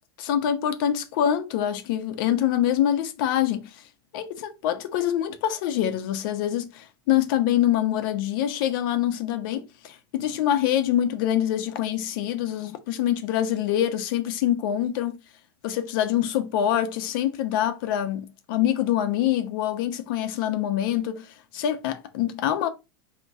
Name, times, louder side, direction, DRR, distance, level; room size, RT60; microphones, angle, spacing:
voice 1, 0.2-3.8 4.1-15.2 15.6-22.7, left 11 dB, 65° left, 0.8 m, -25 dB
4.0 x 3.0 x 3.5 m
supercardioid pair, 120°, 12 cm